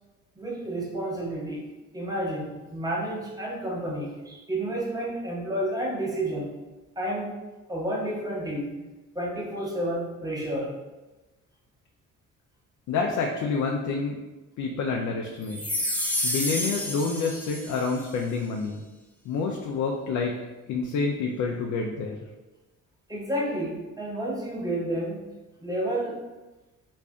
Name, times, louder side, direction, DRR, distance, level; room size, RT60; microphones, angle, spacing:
voice 1, 0.4-1.7 1.9-6.5 7.0-7.4 7.7-8.8 9.1-10.7 23.1-25.2 25.6-26.2, right 1 dB, 10° right, -4 dB, 1.0 m, -30 dB
voice 2, 12.9-14.2 14.6-15.6 16.2-18.8 19.3-20.4 20.7-22.2, left 4 dB, 70° left, 0 dB, 0.5 m, -28 dB
sound 1, 15.5-18.0, left 1 dB, 5° left, 0.6 m, -29 dB
3.1 x 2.6 x 3.5 m, 1.1 s
cardioid pair, 90°, 30 cm